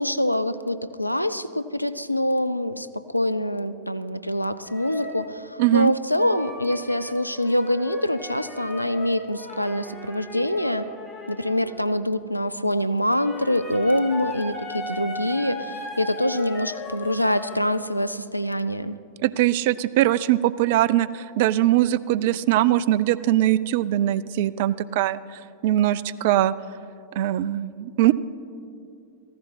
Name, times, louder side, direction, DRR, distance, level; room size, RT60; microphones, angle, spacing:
voice 1, 0.0-10.9 11.3-19.0, left 1 dB, 90° left, 12 dB, 0.4 m, -25 dB
sound 1, 4.6-5.3 6.2-11.9 13.0-17.7, left 2 dB, 20° left, 2.2 m, -38 dB
voice 2, 5.6-5.9 19.2-26.5 27.2-28.1, right 14 dB, 50° right, 18 dB, 0.4 m, -21 dB
15.0 x 15.0 x 4.2 m, 2.5 s
figure-of-eight pair, 90°, 0 cm